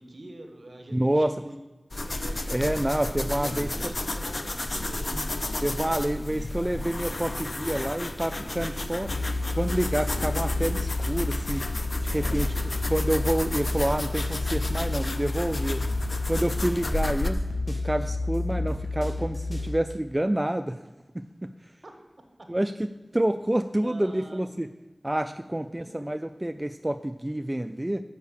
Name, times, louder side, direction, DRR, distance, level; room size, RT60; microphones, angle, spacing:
voice 1, 0.0-1.6 1.9-2.4 2.9-5.3 5.9-6.0 12.1-12.5 21.8-21.9 22.4-22.5 23.8-24.5, right 1 dB, 60° right, 4 dB, 1.4 m, -44 dB
voice 2, 0.9-1.3 2.5-3.7 5.6-9.1 9.5-11.6 12.0-12.5 12.9-15.8 16.3-17.4 17.7-20.8 21.1-21.5 22.5-22.7 23.1-24.7 25.0-28.0, right 1 dB, 20° right, 8 dB, 0.3 m, -28 dB
sound 1, 1.9-17.3, left 2 dB, 55° left, 0.6 m, -32 dB
sound 2, 9.0-19.7, left 2 dB, 75° left, 2.0 m, -30 dB
6.7 x 5.5 x 6.8 m, 1.1 s
wide cardioid pair, 45°, 0 cm